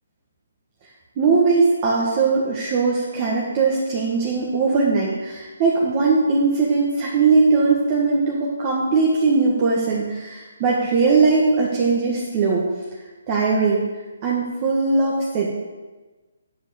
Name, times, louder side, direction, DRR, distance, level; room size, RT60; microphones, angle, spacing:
voice 1, 1.2-12.6 13.3-13.8 14.2-15.5, right 4 dB, 30° right, -3 dB, 1.5 m, -20 dB
9.1 x 5.5 x 6.4 m, 1.2 s
hypercardioid pair, 150°, 0 cm